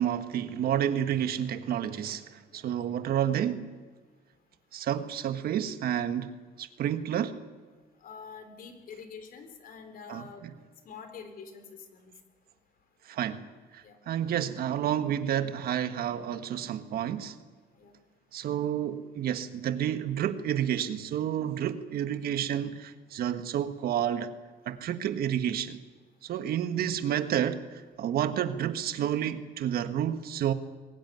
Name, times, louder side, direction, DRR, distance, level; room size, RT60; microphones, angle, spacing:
voice 1, 0.0-3.7 4.7-7.4 10.1-10.5 13.0-17.4 18.3-24.3 24.6-25.8 26.2-30.5, right 10 dB, 65° right, 10 dB, 1.5 m, -30 dB
voice 2, 8.0-10.5 10.9-12.1 13.8-14.0 17.8-17.9, left 6 dB, 60° left, 8 dB, 3.9 m, -46 dB
22.5 x 18.0 x 9.4 m, 1.4 s
cardioid pair, 110°, 17 cm